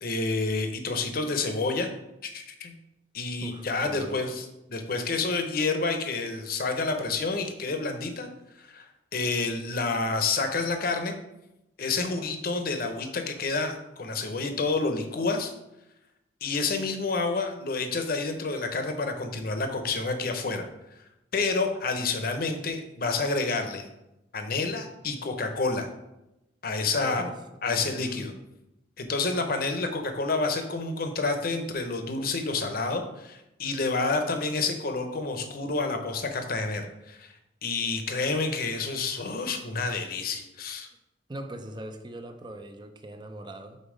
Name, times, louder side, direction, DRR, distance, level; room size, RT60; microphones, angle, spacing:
voice 1, 0.0-1.9 2.2-2.7 3.1-4.4 4.7-8.3 8.6-11.1 11.8-15.5 16.4-20.7 21.3-23.9 24.3-25.9 26.6-27.2 27.6-28.3 29.0-37.3 37.6-40.9, left 3 dB, 55° left, 6 dB, 0.8 m, -29 dB
voice 2, 3.4-4.4 27.0-27.4 27.6-28.3 41.3-43.8, right 1 dB, 25° right, 6 dB, 0.5 m, -41 dB
5.3 x 4.0 x 5.0 m, 0.91 s
head